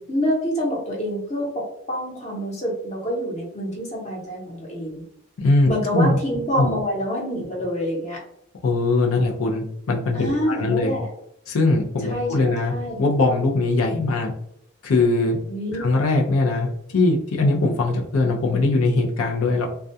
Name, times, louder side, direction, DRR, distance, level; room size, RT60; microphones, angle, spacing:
voice 1, 0.0-1.4 1.9-5.0 5.7-8.2 10.1-11.1 12.0-13.0 15.5-15.8, equal, 35° left, -3 dB, 0.8 m, -26 dB
voice 2, 5.4-6.2 6.6-6.7 8.6-10.9 11.5-12.7 13.0-14.3 14.8-15.4 15.7-19.7, left 2 dB, 90° left, 0 dB, 0.5 m, -21 dB
2.3 x 2.2 x 2.6 m, 0.74 s
head